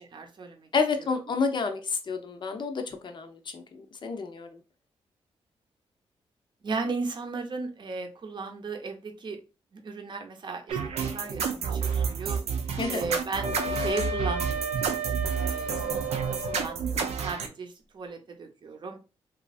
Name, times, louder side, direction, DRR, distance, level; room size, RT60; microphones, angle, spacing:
voice 1, 0.1-0.7 6.6-9.4 9.7-12.4 12.9-14.8 15.4-16.2 16.5-19.0, right 4 dB, 45° right, 4 dB, 0.7 m, -36 dB
voice 2, 0.7-4.6 12.8-13.0, left 4 dB, 45° left, 6 dB, 0.6 m, -30 dB
sound 1, 10.7-17.5, right 6 dB, 85° right, 0.5 m, -30 dB
Wind instrument woodwind instrument, 13.4-16.6, right 1 dB, 10° right, 0.9 m, -33 dB
3.0 x 2.4 x 2.4 m, 0.31 s
cardioid pair, 95°, 11 cm